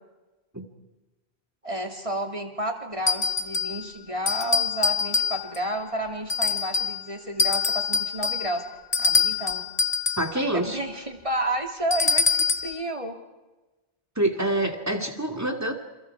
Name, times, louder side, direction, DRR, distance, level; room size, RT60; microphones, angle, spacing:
voice 1, 1.6-8.6 9.0-9.6 10.5-13.2, right 1 dB, 30° right, 3 dB, 3.0 m, -31 dB
sound 1, 3.1-3.8 4.3-5.7 6.3-7.0 7.4-10.3 11.9-12.8, left 4 dB, 35° left, 1.5 m, -25 dB
voice 2, 10.2-10.8 14.2-15.7, right 1 dB, 15° right, 3 dB, 2.6 m, -26 dB
29.0 x 28.5 x 4.9 m, 1.2 s
omnidirectional pair, 1.1 m